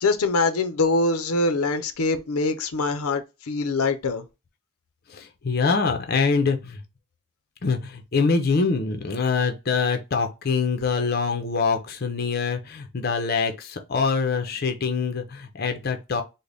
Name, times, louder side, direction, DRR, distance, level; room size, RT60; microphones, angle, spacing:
voice 1, 0.0-4.2, left 3 dB, 90° left, 0.6 m, -23 dB
voice 2, 5.1-6.8 7.6-16.2, left 4 dB, 45° left, 0.5 m, -24 dB
3.8 x 2.1 x 3.3 m
head